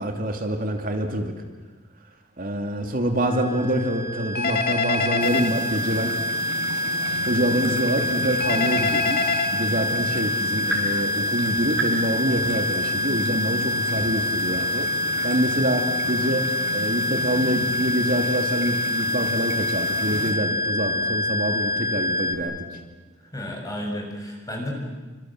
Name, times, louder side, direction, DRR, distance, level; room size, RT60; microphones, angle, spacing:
voice 1, 0.0-1.3 2.4-6.2 7.3-9.2 9.5-14.9 15.2-22.6, right 1 dB, 50° right, 3 dB, 2.8 m, -26 dB
sound 1, 3.3-22.4, left 1 dB, 15° right, 4.7 m, -26 dB
Telephone, 4.3-5.5 8.4-9.5, left 5 dB, 55° left, 2.1 m, -25 dB
sound 2, 5.2-20.3, right 2 dB, 80° right, 6.2 m, -35 dB
voice 2, 23.3-24.7, left 1 dB, 20° left, 1 dB, 7.4 m, -32 dB
29.0 x 26.0 x 7.9 m, 1.3 s
head